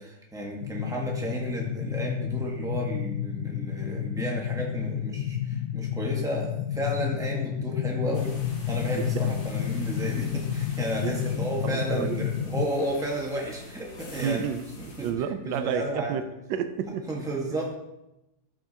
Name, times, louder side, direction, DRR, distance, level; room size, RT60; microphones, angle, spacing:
voice 1, 0.0-8.3 8.7-14.4 14.8-15.1 15.4-16.2 17.1-17.7, right 1 dB, ahead, -2 dB, 1.0 m, -32 dB
sound 1, 0.6-12.7, left 10 dB, 80° left, 0.7 m, -30 dB
sound 2, 8.1-15.1, left 2 dB, 35° left, 1.1 m, -46 dB
voice 2, 8.9-9.4 10.9-12.2 14.2-14.6 15.0-16.2 16.5-17.0, right 8 dB, 80° right, 9 dB, 1.3 m, -31 dB
12.0 x 5.8 x 2.8 m, 0.90 s
omnidirectional pair, 2.0 m